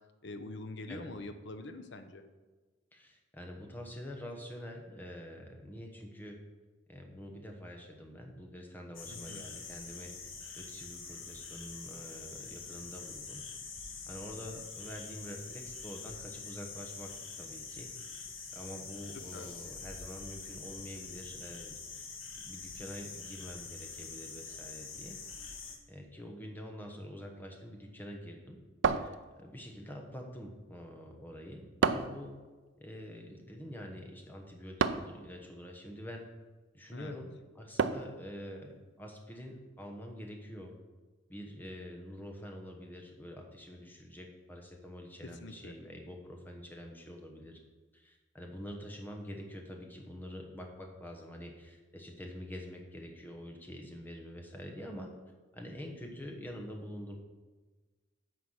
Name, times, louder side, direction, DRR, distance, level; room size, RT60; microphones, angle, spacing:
voice 1, 0.2-2.2 9.1-9.5 19.3-19.5 36.9-37.1 45.4-45.7, left 2 dB, 60° left, 8 dB, 0.7 m, -44 dB
voice 2, 2.9-6.4 6.9-10.1 10.6-13.4 14.1-17.1 17.4-22.1 22.4-25.2 25.9-28.6 28.9-32.3 32.8-36.2 36.7-40.7 41.3-47.6 47.9-55.1 55.5-57.2, equal, 10° left, 1 dB, 1.2 m, -46 dB
sound 1, 8.9-25.8, left 5 dB, 85° left, 1.4 m, -45 dB
sound 2, 28.8-29.7 31.8-32.3 34.8-35.2 37.8-38.2, right 5 dB, 65° right, 0.4 m, -30 dB
9.5 x 4.7 x 6.4 m, 1.3 s
head